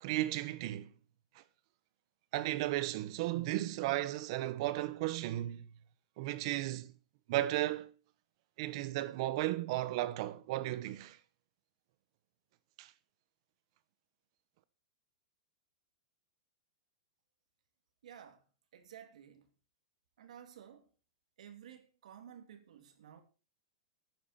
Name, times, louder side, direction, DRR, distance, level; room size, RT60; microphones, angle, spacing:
voice 1, 0.0-0.9 2.3-5.7 6.2-6.9 7.3-7.9 8.6-11.2 12.8-12.9, right 15 dB, 50° right, 1.0 m, -35 dB
voice 2, 18.0-18.4 18.7-19.5 20.2-20.9 21.4-23.2, right 9 dB, 80° right, 2.7 m, -53 dB
12.0 x 9.4 x 4.4 m
hypercardioid pair, 145°, 4 cm